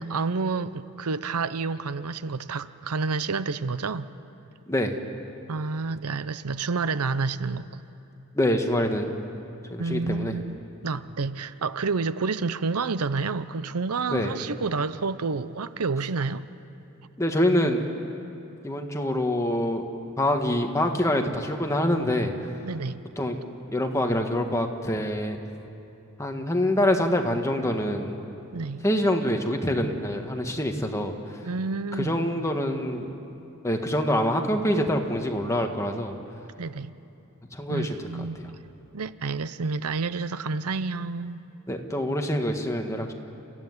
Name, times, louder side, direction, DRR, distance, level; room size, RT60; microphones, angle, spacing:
voice 1, 0.0-4.1 5.5-7.8 9.8-10.6 10.8-16.4 22.6-23.0 28.5-28.8 31.4-32.2 36.6-36.9 37.7-38.4 38.9-41.5, right 4 dB, 85° right, 14 dB, 0.7 m, -29 dB
voice 2, 8.3-9.1 9.7-10.3 14.1-14.4 17.2-17.8 18.6-19.8 20.2-22.3 23.2-23.4 23.7-25.4 26.2-28.1 28.8-31.4 31.9-33.1 33.6-36.1 37.5-38.0 38.3-38.4 41.7-43.1, left 1 dB, 15° left, 4 dB, 1.6 m, -25 dB
29.5 x 15.0 x 9.7 m, 2.8 s
head